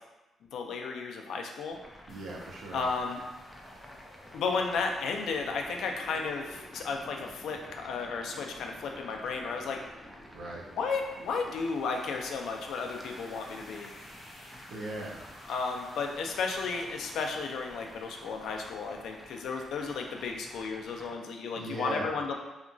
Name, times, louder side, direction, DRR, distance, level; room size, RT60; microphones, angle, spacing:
voice 1, 0.5-1.8 2.7-3.2 4.3-9.8 10.8-13.9 15.5-22.3, left 4 dB, 75° left, 2 dB, 0.3 m, -33 dB
sound 1, 1.7-21.2, equal, 5° right, 0.3 m, -52 dB
sound 2, 2.1-20.7, left 1 dB, 45° left, 0.7 m, -53 dB
voice 2, 2.1-2.8 10.3-10.6 14.7-15.2 21.5-22.1, right 1 dB, 65° right, -2 dB, 0.5 m, -38 dB
2.8 x 2.5 x 2.2 m, 1.0 s
cardioid pair, 160°, 0 cm